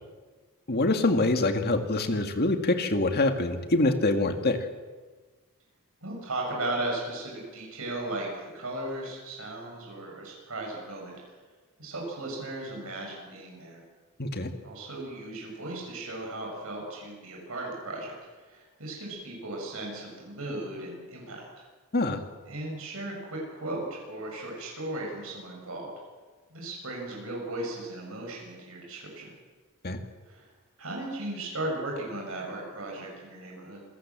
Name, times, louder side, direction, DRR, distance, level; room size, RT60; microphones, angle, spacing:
voice 1, 0.7-4.6 14.2-14.5 21.9-22.2 29.8-30.0, left 2 dB, 50° left, 6 dB, 2.1 m, -25 dB
voice 2, 6.0-8.3 8.5-11.2 11.8-13.8 14.6-18.1 18.4-21.5 22.5-25.9 26.5-29.3 30.2-30.5 30.8-33.8, right 2 dB, 70° right, -1 dB, 7.6 m, -36 dB
27.5 x 17.5 x 7.6 m, 1.4 s
head